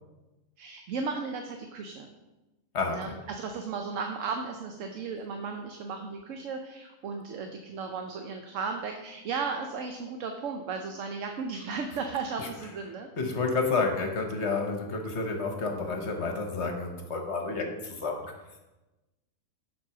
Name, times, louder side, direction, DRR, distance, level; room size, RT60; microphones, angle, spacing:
voice 1, 0.6-2.1 2.9-13.1, right 5 dB, 70° right, 4 dB, 1.0 m, -35 dB
voice 2, 13.2-18.3, left 4 dB, 55° left, 3 dB, 1.2 m, -30 dB
7.3 x 4.7 x 5.8 m, 1.1 s
omnidirectional pair, 1.4 m